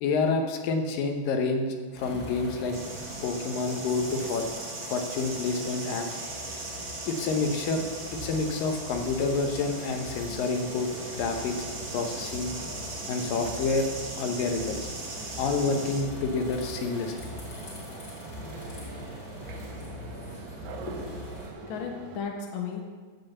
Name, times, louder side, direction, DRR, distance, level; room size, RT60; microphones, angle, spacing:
voice 1, 0.0-2.8 3.2-4.4 4.8-6.2 7.1-7.8 8.1-11.6 11.9-12.5 13.1-13.9 14.2-14.8 15.4-17.3 17.9-18.0, left 4 dB, 75° left, 4 dB, 2.7 m, -28 dB
sound 1, 1.9-21.5, left 1 dB, 25° left, 3.4 m, -41 dB
sound 2, 2.7-16.0, right 3 dB, 45° right, 2.2 m, -40 dB
sound 3, 10.4-22.2, right 5 dB, 80° right, 2.7 m, -45 dB
voice 2, 20.7-22.8, left 5 dB, 50° left, 1 dB, 1.6 m, -36 dB
16.0 x 5.8 x 6.7 m, 1.5 s
omnidirectional pair, 4.1 m